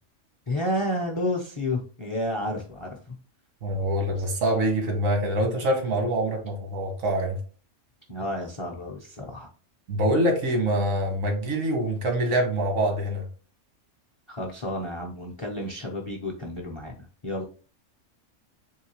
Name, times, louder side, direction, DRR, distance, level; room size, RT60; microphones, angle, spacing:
voice 1, 0.5-3.2 8.1-9.5 14.3-17.5, left 1 dB, 40° left, 2 dB, 0.4 m, -31 dB
voice 2, 3.6-7.4 9.9-13.2, right 1 dB, 90° right, 4 dB, 1.4 m, -25 dB
3.6 x 3.2 x 2.8 m, 0.39 s
omnidirectional pair, 1.3 m